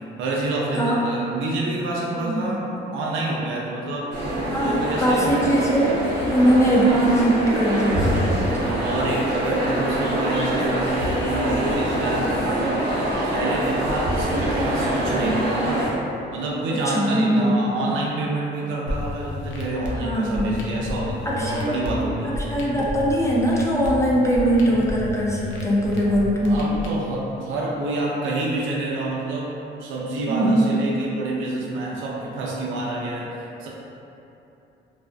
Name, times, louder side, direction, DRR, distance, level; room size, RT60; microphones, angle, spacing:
voice 1, 0.2-4.2 4.6-5.3 6.3-6.6 8.4-12.9 13.3-15.9 16.3-22.4 26.0-26.1 26.4-33.7, right 2 dB, 80° right, -3 dB, 0.4 m, -28 dB
voice 2, 2.1-2.6 4.5-6.0 6.3-8.6 16.7-17.9 20.0-20.5 21.2-21.8 22.2-26.6 30.3-30.7, right 1 dB, 15° left, -5 dB, 0.4 m, -21 dB
sound 1, 4.1-15.9, right 1 dB, 55° right, 0.7 m, -24 dB
sound 2, 18.9-26.9, left 2 dB, 70° left, 0.5 m, -32 dB
2.3 x 2.2 x 2.4 m, 2.8 s
cardioid pair, 90°, 20 cm